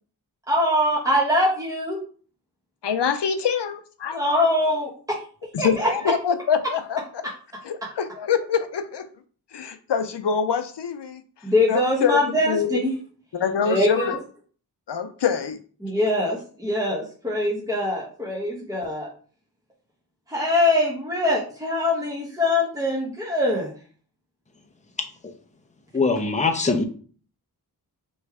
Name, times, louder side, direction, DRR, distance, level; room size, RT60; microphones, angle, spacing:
voice 1, 0.5-2.0 4.1-5.2 5.6-5.9 11.4-12.9 13.7-14.2 15.8-19.1 20.3-23.7, left 1 dB, 10° right, -4 dB, 1.2 m, -23 dB
voice 2, 2.8-4.4 5.5-7.2 7.6-9.1 9.5-11.2 11.7-12.8 13.3-14.2 14.9-15.6, left 7 dB, 85° left, 8 dB, 0.6 m, -25 dB
voice 3, 25.9-26.8, left 4 dB, 20° left, 5 dB, 0.7 m, -21 dB
3.2 x 3.2 x 4.7 m, 0.42 s
wide cardioid pair, 70°, 41 cm